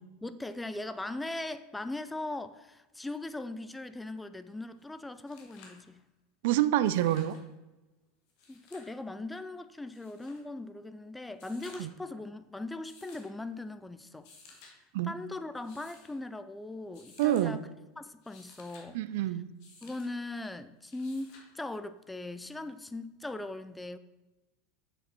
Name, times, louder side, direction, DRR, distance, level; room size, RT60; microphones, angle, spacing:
voice 1, 0.2-6.0 8.5-14.3 15.0-17.6 18.0-19.0 19.8-24.0, left 2 dB, 10° left, 0.5 m, -39 dB
sound 1, 4.8-4.9 5.1-5.8 6.7-7.4 8.3-9.0 9.9-10.4 11.3-12.0 12.8-13.3 14.1-14.7 15.5-16.1 16.9-17.5 18.1-18.9 19.6-20.1 20.9-21.5 22.9-23.0, left 4 dB, 60° left, 2.1 m, -56 dB
voice 2, 6.4-7.4 11.8-11.9 14.9-15.1 17.2-17.6 18.9-19.5, right 13 dB, 65° right, 0.4 m, -27 dB
7.4 x 6.6 x 4.4 m
hypercardioid pair, 85°, 0 cm